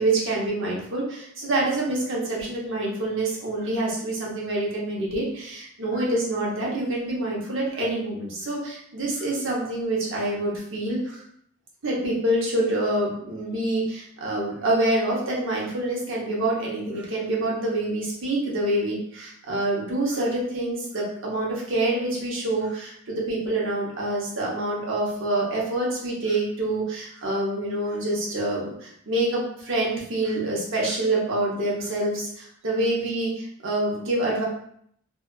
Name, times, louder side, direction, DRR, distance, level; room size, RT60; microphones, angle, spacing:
voice 1, 0.0-11.2 11.8-34.4, right 1 dB, 65° right, -4 dB, 0.8 m, -26 dB
2.7 x 2.3 x 2.3 m, 0.68 s
head